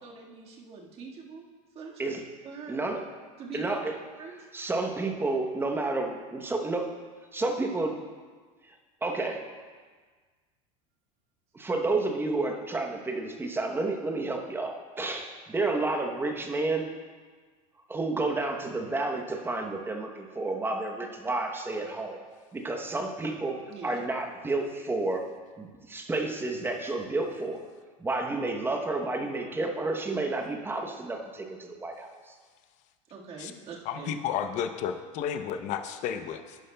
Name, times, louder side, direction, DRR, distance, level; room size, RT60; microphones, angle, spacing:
voice 1, 0.0-1.4 1.7-2.1 2.4-2.9 3.4-3.8 4.2-4.3 23.7-24.0 33.1-34.2, right 5 dB, 35° right, -2 dB, 1.7 m, -43 dB
voice 2, 2.7-3.0 3.5-3.9 4.5-6.9 7.3-8.0 8.7-8.8 9.0-9.4 11.5-16.9 17.9-22.2 22.5-25.3 25.6-27.6 28.0-32.4, right 2 dB, 15° right, 3 dB, 0.8 m, -30 dB
voice 3, 33.9-36.6, left 8 dB, 45° left, 8 dB, 0.7 m, -32 dB
11.0 x 10.5 x 2.2 m, 1.5 s
supercardioid pair, 125°, 17 cm